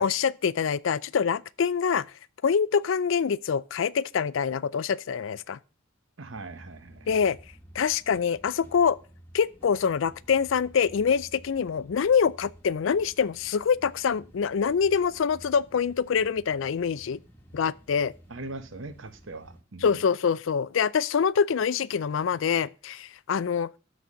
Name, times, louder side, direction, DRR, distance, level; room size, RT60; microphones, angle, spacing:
voice 1, 0.0-2.1 2.4-5.6 7.1-7.4 7.7-9.0 9.3-17.2 17.5-18.1 19.8-23.8, left 6 dB, 70° left, 0.4 m, -25 dB
voice 2, 6.2-7.1 18.3-20.0, right 2 dB, 65° right, 1.0 m, -41 dB
sound 1, 6.3-19.6, equal, 10° left, 1.4 m, -53 dB
12.5 x 4.2 x 6.2 m
head